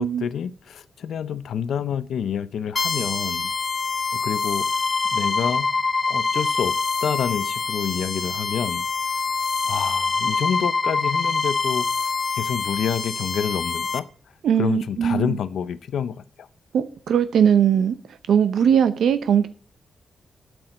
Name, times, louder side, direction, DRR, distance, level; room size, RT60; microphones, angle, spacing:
voice 1, 0.0-3.5 4.2-4.7 5.1-5.7 6.1-8.9 9.6-11.9 12.4-14.1 14.6-16.5, left 8 dB, 85° left, 0.5 m, -28 dB
sound 1, 2.8-14.0, left 4 dB, 30° left, 0.7 m, -25 dB
voice 2, 14.4-15.4 16.7-19.5, right 8 dB, 90° right, 0.7 m, -20 dB
8.6 x 6.1 x 7.8 m
wide cardioid pair, 140°, 0 cm